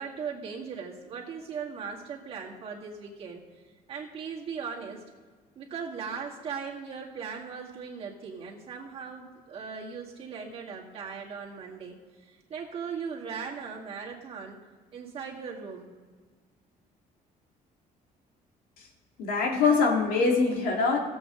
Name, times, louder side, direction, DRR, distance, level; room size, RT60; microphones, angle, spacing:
voice 1, 0.0-3.4 3.9-5.0 5.6-12.0 12.2-14.6 14.9-15.9, right 6 dB, 40° right, -2 dB, 2.1 m, -38 dB
voice 2, 19.2-21.0, left 4 dB, 85° left, 1 dB, 2.2 m, -23 dB
17.0 x 8.0 x 3.8 m, 1.5 s
cardioid pair, 165°, 14 cm